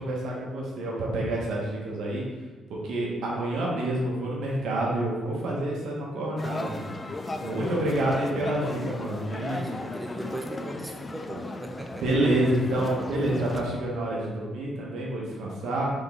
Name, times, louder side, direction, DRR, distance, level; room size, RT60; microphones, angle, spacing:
voice 1, 0.0-2.2 2.7-7.0 7.4-9.6 12.0-15.9, right 1 dB, 75° right, -4 dB, 1.1 m, -28 dB
sound 1, 6.4-13.6, left 2 dB, 25° left, 0.3 m, -36 dB
voice 2, 7.4-8.2 9.5-12.1, right 1 dB, 15° right, 2 dB, 0.6 m, -37 dB
3.8 x 3.6 x 3.5 m, 1.3 s
cardioid pair, 90°, 0 cm